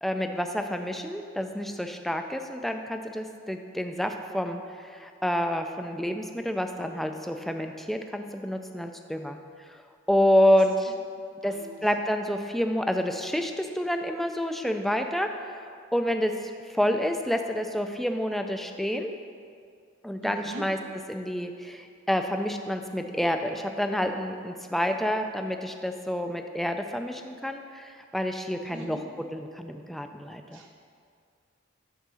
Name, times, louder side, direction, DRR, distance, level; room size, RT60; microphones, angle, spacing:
voice 1, 0.0-9.4 9.7-9.8 10.1-10.9 11.4-11.6 11.8-15.6 15.9-16.3 16.7-19.1 20.0-20.8 21.1-29.0 29.3-30.6, equal, ahead, 5 dB, 0.3 m, -28 dB
voice 2, 11.4-11.8 20.2-20.6 28.7-29.0 30.5-30.8, right 2 dB, 65° right, 1 dB, 0.7 m, -42 dB
8.2 x 3.6 x 6.2 m, 2.3 s
head